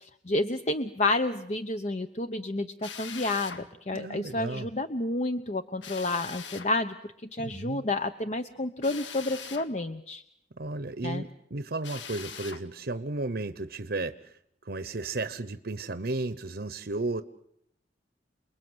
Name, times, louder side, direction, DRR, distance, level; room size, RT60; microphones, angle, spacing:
voice 1, 0.0-6.9 7.3-10.2 11.0-11.2, left 2 dB, 40° left, 9 dB, 0.9 m, -30 dB
Drill, 2.8-3.6 5.8-6.7 8.8-9.7 11.8-12.6, left 6 dB, 80° left, 2.0 m, -41 dB
voice 2, 3.9-4.7 7.4-7.9 10.6-17.2, right 2 dB, 55° right, 12 dB, 0.9 m, -34 dB
29.0 x 21.0 x 8.0 m, 0.74 s
head